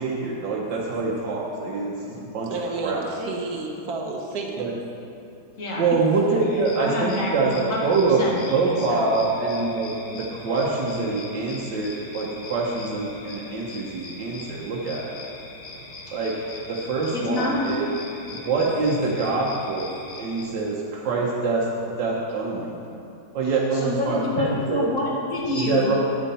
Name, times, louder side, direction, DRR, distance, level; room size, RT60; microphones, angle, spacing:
voice 1, 0.0-2.5 2.8-3.0 4.6-4.7 5.8-7.5 7.8-8.2 8.5-15.2 16.1-16.3 16.7-18.0 18.3-19.9 20.2-21.7 22.0-22.7 23.3-24.9 25.5-26.0, right 3 dB, 85° right, -4 dB, 1.6 m, -25 dB
voice 2, 2.5-4.7, right 3 dB, 65° right, 2 dB, 1.5 m, -31 dB
voice 3, 6.2-9.1 17.1-17.7 18.6-18.8 23.4-26.0, left 2 dB, 50° left, -3 dB, 2.0 m, -28 dB
sound 1, 6.4-20.4, left 3 dB, 85° left, 1.8 m, -41 dB
9.8 x 9.0 x 4.2 m, 2.7 s
omnidirectional pair, 1.9 m